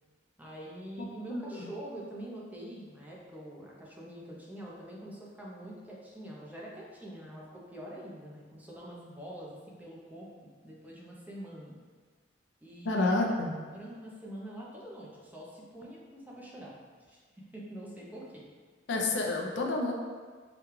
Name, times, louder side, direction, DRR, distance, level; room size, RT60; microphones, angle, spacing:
voice 1, 0.4-11.7 12.6-13.1 13.7-16.7 17.1-18.5, right 1 dB, 10° right, -5 dB, 0.6 m, -45 dB
voice 2, 1.3-1.7 12.8-13.5 18.9-19.9, left 2 dB, 70° left, 0 dB, 0.5 m, -29 dB
4.9 x 2.3 x 3.1 m, 1.5 s
head